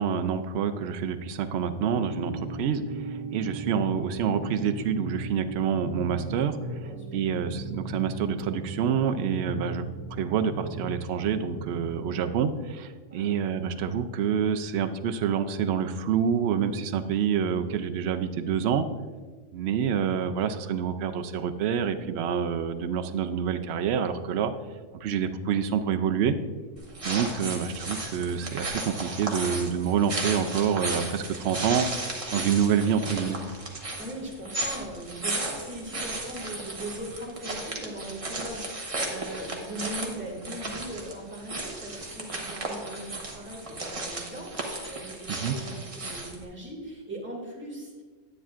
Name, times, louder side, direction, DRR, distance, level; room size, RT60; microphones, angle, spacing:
voice 1, 0.0-6.6 7.1-18.9 19.5-24.5 25.0-26.4 27.0-31.9 32.3-33.4 45.3-45.5, right 7 dB, 65° right, 8 dB, 0.8 m, -27 dB
sound 1, 1.9-11.9, right 2 dB, 85° right, 1.5 m, -38 dB
voice 2, 6.8-7.2 13.1-13.4 33.4-33.5 34.0-48.0, right 1 dB, 10° right, -5 dB, 1.9 m, -40 dB
sound 2, 26.8-46.4, right 2 dB, 30° right, 1.0 m, -35 dB
9.7 x 9.1 x 2.5 m, 1.4 s
omnidirectional pair, 1.3 m